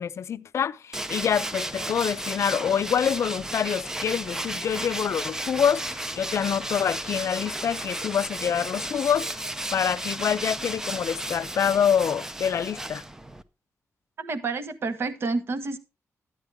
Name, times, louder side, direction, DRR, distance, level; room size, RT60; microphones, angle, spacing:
voice 1, 0.0-9.3 9.7-13.0, left 8 dB, 60° left, 0.5 m, -26 dB
Tools, 0.9-13.4, right 1 dB, 10° right, 0.6 m, -34 dB
voice 2, 14.2-15.8, right 3 dB, 50° right, 1.3 m, -29 dB
12.0 x 9.8 x 3.5 m
wide cardioid pair, 175°, 5 cm